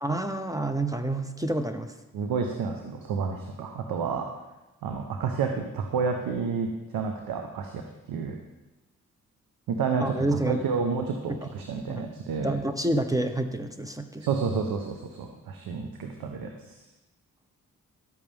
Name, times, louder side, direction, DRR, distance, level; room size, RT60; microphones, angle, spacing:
voice 1, 0.0-1.9 10.0-10.6 11.4-11.5 11.9-12.1 12.4-14.3, right 1 dB, 10° right, 7 dB, 1.0 m, -28 dB
voice 2, 2.1-4.3 4.8-8.4 9.7-12.6 14.2-16.7, right 5 dB, 80° right, 4 dB, 1.0 m, -30 dB
12.5 x 8.9 x 3.5 m, 1.1 s
supercardioid pair, 50°, 34 cm